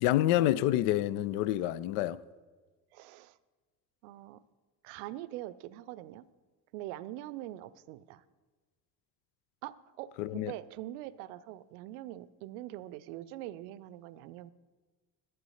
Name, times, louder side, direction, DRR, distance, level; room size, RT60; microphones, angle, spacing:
voice 1, 0.0-2.2 10.2-10.5, left 14 dB, 55° left, 0.6 m, -28 dB
voice 2, 2.9-3.4 4.0-4.4 4.8-6.2 6.7-8.2 9.6-14.5, right 14 dB, 60° right, 0.6 m, -43 dB
11.5 x 7.9 x 5.6 m
figure-of-eight pair, 55°, 50 cm